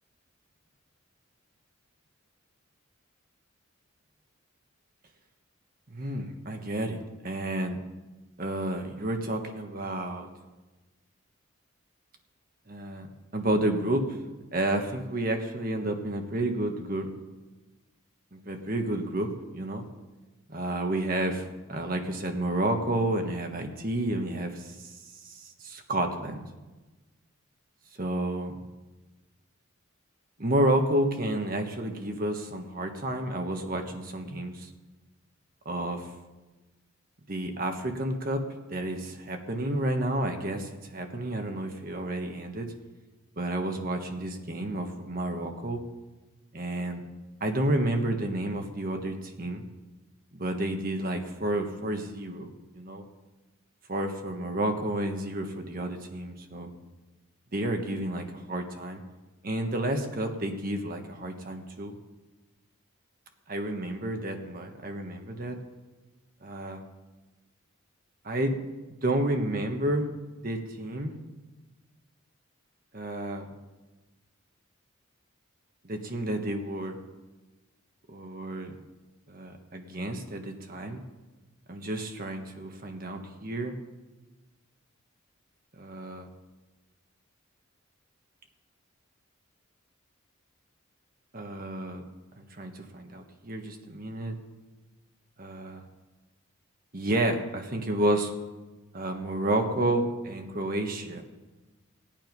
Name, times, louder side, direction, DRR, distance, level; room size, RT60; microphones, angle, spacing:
voice 1, 5.9-7.8 8.4-10.3 12.7-13.1 13.3-14.0 14.5-17.1 18.3-19.8 20.5-24.9 25.2-26.5 28.0-28.5 30.4-34.7 35.6-36.1 37.3-38.4 38.7-42.7 43.4-45.8 46.5-47.0 47.4-49.6 50.3-53.0 53.9-56.7 57.5-59.0 59.4-61.9 63.5-65.6 66.4-66.8 68.2-68.6 69.0-70.1 70.4-71.1 72.9-73.5 75.8-76.9 78.1-78.7 79.3-81.0 81.7-83.7 85.8-86.3 91.3-92.0 92.6-94.4 95.4-95.8 96.9-98.3 98.9-101.2, right 1 dB, 40° right, 4 dB, 1.4 m, -30 dB
17.5 x 9.1 x 5.3 m, 1.2 s
head